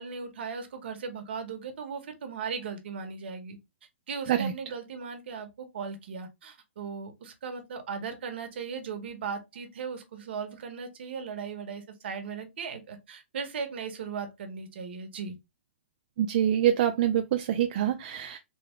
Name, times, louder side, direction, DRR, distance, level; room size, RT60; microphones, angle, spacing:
voice 1, 0.0-3.6 4.1-15.4, right 5 dB, 60° right, 1.0 m, -37 dB
voice 2, 16.2-18.4, right 10 dB, 40° right, 0.3 m, -25 dB
3.4 x 2.2 x 3.5 m
hypercardioid pair, 160°, 7 cm